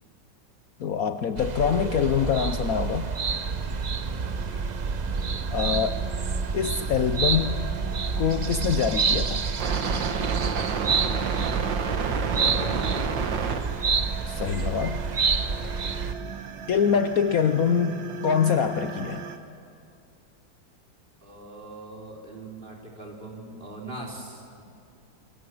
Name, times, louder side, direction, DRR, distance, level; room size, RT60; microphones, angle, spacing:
voice 1, 0.8-3.1 5.5-6.0 6.5-7.6 8.2-9.4 14.3-15.0 15.6-15.7 16.7-19.2, left 7 dB, 60° left, 9 dB, 1.2 m, -24 dB
sound 1, 1.4-16.1, right 5 dB, 45° right, 0.6 m, -28 dB
sound 2, 3.3-19.4, right 6 dB, 85° right, 2.1 m, -34 dB
voice 2, 4.2-4.5 11.8-13.3 16.2-16.5 21.2-24.6, right 1 dB, 30° right, -1 dB, 4.4 m, -40 dB
29.0 x 24.0 x 7.9 m, 2.5 s
omnidirectional pair, 2.0 m